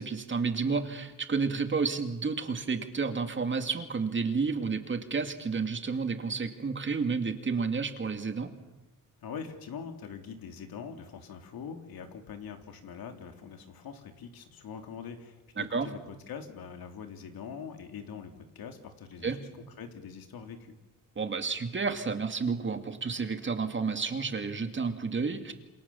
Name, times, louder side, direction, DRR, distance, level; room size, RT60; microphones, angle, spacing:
voice 1, 0.0-8.5 15.6-15.9 19.2-19.4 21.2-25.5, right 4 dB, 35° right, 7 dB, 2.4 m, -31 dB
voice 2, 9.2-20.7, left 6 dB, 90° left, 5 dB, 3.3 m, -43 dB
28.0 x 27.5 x 7.2 m, 1.1 s
wide cardioid pair, 150°, 35 cm